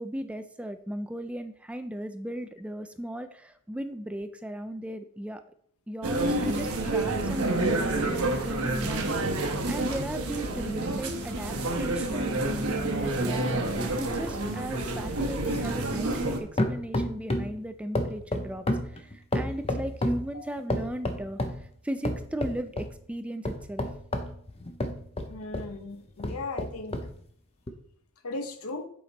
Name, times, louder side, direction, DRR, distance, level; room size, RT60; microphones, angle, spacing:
voice 1, 0.0-5.4 5.9-13.7 13.9-23.9, right 1 dB, 5° right, 9 dB, 0.3 m, -37 dB
sound 1, 6.0-16.4, right 2 dB, 85° right, 1.1 m, -29 dB
sound 2, 13.0-16.3 16.6-17.6 17.9-20.3 20.7-21.6 22.0-22.9 23.4-25.7 26.2-27.1 27.7-27.8, left 1 dB, 30° left, 0.7 m, -31 dB
voice 2, 25.3-27.0 28.2-28.9, left 3 dB, 85° left, 7 dB, 0.9 m, -37 dB
7.7 x 5.1 x 4.1 m, 0.63 s
head